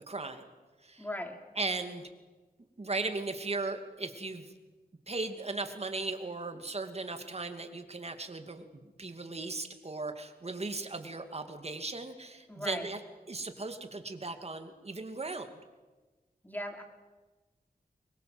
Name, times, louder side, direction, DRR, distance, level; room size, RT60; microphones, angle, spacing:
voice 1, 0.1-0.5 0.8-1.1 1.6-2.1 2.8-4.5 5.1-13.0 13.3-15.6, right 3 dB, 40° right, 7 dB, 2.6 m, -37 dB
voice 2, 1.0-1.4 12.5-12.9 16.4-16.8, left 1 dB, 10° left, 4 dB, 3.8 m, -38 dB
24.5 x 21.5 x 8.0 m, 1.2 s
wide cardioid pair, 75°, 16 cm